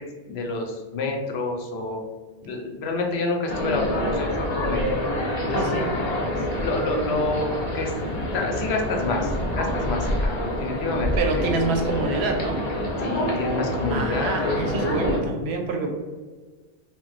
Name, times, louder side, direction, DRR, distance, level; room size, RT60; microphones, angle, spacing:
voice 1, 0.0-2.0 2.4-5.0 5.4-5.7 6.6-7.5 7.7-7.9 8.3-11.1 13.0-14.4, left 3 dB, 75° left, 1 dB, 0.8 m, -28 dB
sound 1, 3.5-15.2, left 1 dB, 45° left, 0.6 m, -27 dB
voice 2, 11.2-12.6 13.9-15.9, right 3 dB, 75° right, 3 dB, 0.8 m, -26 dB
2.4 x 2.1 x 3.8 m, 1.4 s
omnidirectional pair, 1.1 m